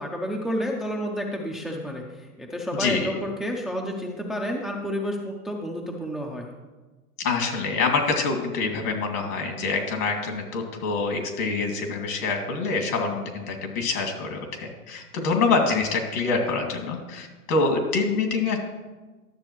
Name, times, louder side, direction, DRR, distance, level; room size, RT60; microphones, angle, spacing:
voice 1, 0.0-6.5, equal, ahead, 0 dB, 0.5 m, -30 dB
voice 2, 7.2-18.6, left 4 dB, 70° left, 2 dB, 2.4 m, -25 dB
12.0 x 7.0 x 3.1 m, 1.2 s
hypercardioid pair, 115°, 46 cm